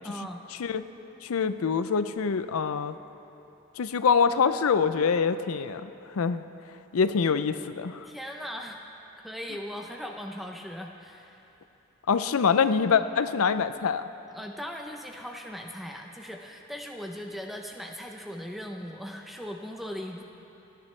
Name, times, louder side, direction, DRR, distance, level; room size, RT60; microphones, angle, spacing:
voice 1, 0.0-0.4 8.0-8.8 9.2-11.4 14.3-20.2, equal, ahead, 2 dB, 0.6 m, -39 dB
voice 2, 1.2-3.0 3.8-6.4 6.9-8.1 12.1-14.0, left 6 dB, 90° left, 12 dB, 0.5 m, -25 dB
28.0 x 10.5 x 3.2 m, 3.0 s
head